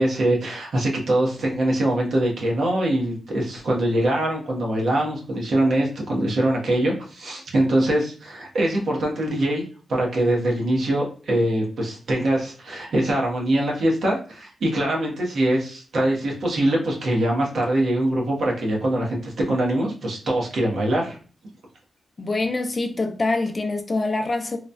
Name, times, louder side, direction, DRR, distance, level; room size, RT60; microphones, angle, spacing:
voice 1, 0.0-9.6 9.9-21.2, right 1 dB, 80° right, 1.0 m, -23 dB
voice 2, 22.2-24.6, left 2 dB, 35° left, 0.4 m, -25 dB
3.1 x 2.2 x 2.5 m
wide cardioid pair, 125°, 0 cm